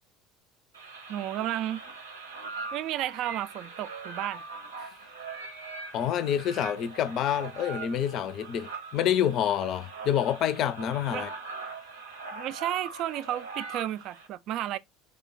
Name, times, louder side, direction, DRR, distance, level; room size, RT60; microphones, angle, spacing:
sound 1, 0.7-14.3, right 4 dB, 80° right, 0.8 m, -41 dB
voice 1, 1.1-1.8 2.7-4.4 11.1-11.2 12.3-14.8, right 12 dB, 50° right, 0.3 m, -32 dB
voice 2, 5.9-11.3, left 10 dB, 50° left, 0.5 m, -27 dB
3.3 x 2.2 x 3.9 m
figure-of-eight pair, 65°, 0 cm